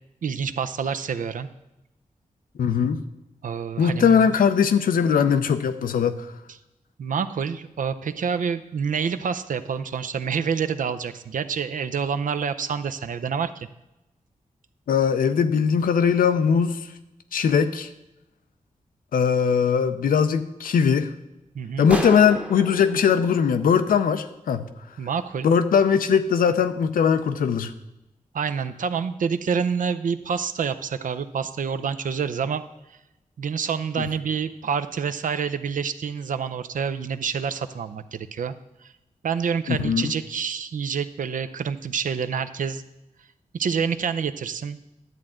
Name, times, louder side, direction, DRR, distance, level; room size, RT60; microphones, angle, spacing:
voice 1, 0.2-1.5 3.4-4.3 7.0-13.7 21.5-21.9 25.0-25.5 28.3-32.6 33.4-38.5 38.8-38.9 39.2-42.8 43.5-44.8, right 6 dB, 70° right, 11 dB, 0.5 m, -27 dB
voice 2, 2.6-3.0 3.8-6.3 14.9-16.8 17.3-17.9 19.1-21.1 21.8-24.7 25.4-27.7 34.0-34.1 39.7-40.1, left 7 dB, 85° left, 9 dB, 0.5 m, -20 dB
sound 1, 21.9-24.5, equal, 10° right, 0.9 m, -34 dB
11.0 x 7.7 x 3.7 m, 0.95 s
cardioid pair, 50°, 14 cm